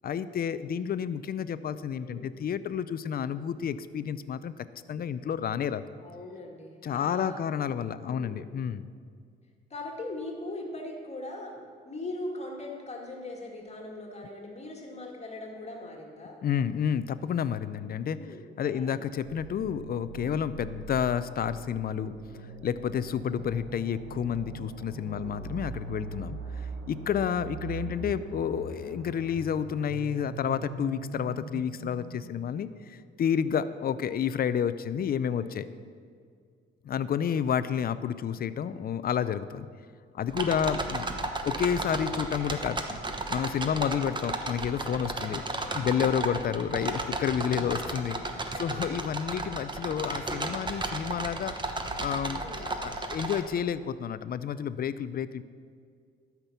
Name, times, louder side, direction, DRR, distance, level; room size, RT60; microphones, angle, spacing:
voice 1, 0.0-4.5 4.9-5.8 6.8-8.9 16.4-18.2 18.6-22.1 22.6-26.4 26.9-35.7 36.8-39.7 40.1-41.0 41.4-42.8 43.3-45.4 45.7-51.5 52.0-55.4, left 8 dB, 50° left, 14 dB, 0.5 m, -30 dB
voice 2, 2.0-2.3 6.0-7.4 7.9-8.4 9.7-16.4 18.1-19.1 24.6-25.4 35.2-35.5 40.4-40.8 43.5-43.9 45.2-45.9 46.2-46.5 48.5-48.9 52.3-52.7, left 2 dB, 35° left, 0 dB, 2.0 m, -41 dB
sound 1, 19.2-33.0, right 4 dB, 85° right, 1.1 m, -42 dB
sound 2, 40.3-53.4, right 2 dB, 25° right, 1.0 m, -34 dB
12.5 x 6.0 x 7.1 m, 2.2 s
cardioid pair, 90°, 20 cm